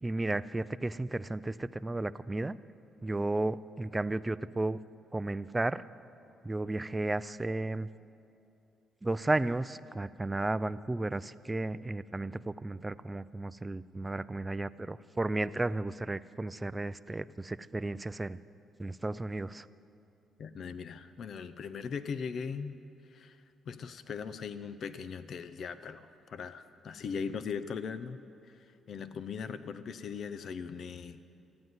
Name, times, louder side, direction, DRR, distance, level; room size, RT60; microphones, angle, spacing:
voice 1, 0.0-2.6 3.0-4.8 5.1-5.8 6.4-7.9 9.0-18.4 18.8-19.7, right 2 dB, 15° right, 16 dB, 0.4 m, -33 dB
voice 2, 20.4-22.8 23.1-31.2, left 6 dB, 60° left, 12 dB, 0.6 m, -40 dB
14.0 x 9.4 x 9.6 m, 2.6 s
cardioid pair, 90°, 0 cm